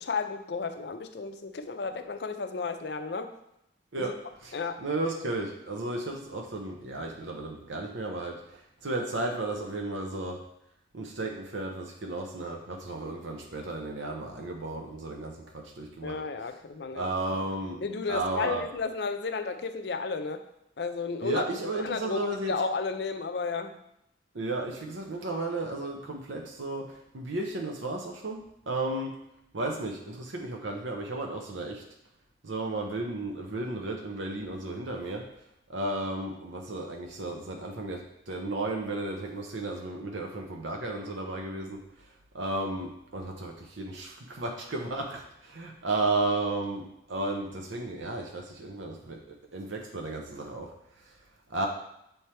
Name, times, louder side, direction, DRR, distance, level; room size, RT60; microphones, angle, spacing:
voice 1, 0.0-3.3 4.0-4.1 4.5-4.8 16.0-17.1 17.8-20.4 20.8-21.5 21.7-23.8, left 4 dB, 65° left, 8 dB, 0.5 m, -33 dB
voice 2, 4.8-8.4 8.8-10.4 10.9-16.1 16.9-17.8 18.1-18.6 21.2-22.5 24.3-26.9 27.1-29.1 29.5-31.8 32.4-35.2 35.7-41.8 42.3-49.2 49.5-50.7 51.5-51.7, right 2 dB, 90° right, 1 dB, 0.8 m, -33 dB
7.2 x 3.3 x 4.3 m, 0.81 s
head